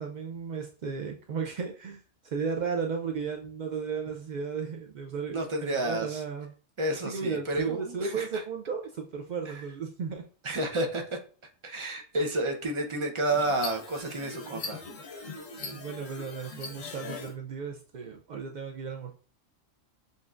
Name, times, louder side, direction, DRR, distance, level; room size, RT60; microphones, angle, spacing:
voice 1, 0.0-6.5 7.0-10.2 14.2-14.5 15.6-19.1, right 5 dB, 70° right, 2 dB, 0.4 m, -35 dB
voice 2, 5.3-6.2 6.8-8.3 10.4-11.2 11.6-15.3, right 1 dB, 30° right, 2 dB, 0.6 m, -31 dB
sound 1, 13.3-17.3, left 4 dB, 75° left, 1.3 m, -41 dB
7.3 x 2.6 x 2.4 m, 0.40 s
omnidirectional pair, 1.4 m